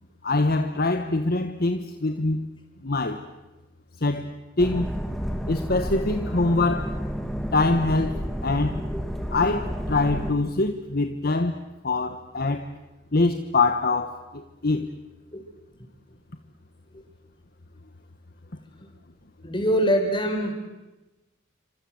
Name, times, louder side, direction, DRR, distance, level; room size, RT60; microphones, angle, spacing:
voice 1, 0.2-2.5 2.8-3.2 4.0-4.9 5.5-7.0 7.5-8.8 9.3-11.5 11.8-12.7 13.1-14.9, left 3 dB, 50° left, 1.3 m, -24 dB
sound 1, 4.6-10.3, equal, ahead, 2.3 m, -31 dB
voice 2, 19.4-20.5, equal, 25° left, 5.3 m, -23 dB
28.5 x 26.0 x 7.9 m
head